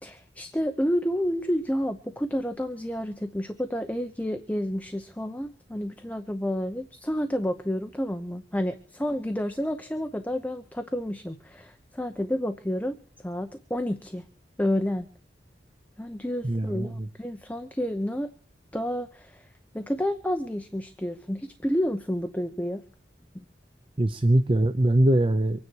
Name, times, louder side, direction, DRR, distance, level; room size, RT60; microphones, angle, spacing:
voice 1, 0.0-14.2 14.6-15.1 16.0-18.3 18.7-22.8 23.3-23.4, equal, 10° left, 7 dB, 0.8 m, -30 dB
voice 2, 16.4-17.1 24.0-25.6, right 1 dB, 30° right, 9 dB, 0.7 m, -22 dB
25.0 x 9.7 x 4.6 m, 0.40 s
head